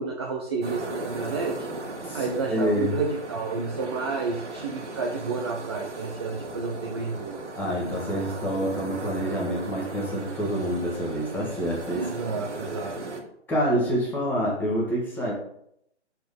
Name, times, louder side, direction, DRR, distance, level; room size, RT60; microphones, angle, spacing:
voice 1, 0.0-1.7 2.1-7.4 12.0-13.0, right 4 dB, 25° right, 0 dB, 0.5 m, -30 dB
sound 1, 0.6-13.2, right 2 dB, 80° right, 2.0 m, -37 dB
voice 2, 2.0-3.0 7.6-12.1 13.5-15.3, equal, 5° left, -4 dB, 1.4 m, -27 dB
6.6 x 4.5 x 5.2 m, 0.73 s
figure-of-eight pair, 145°, 35 cm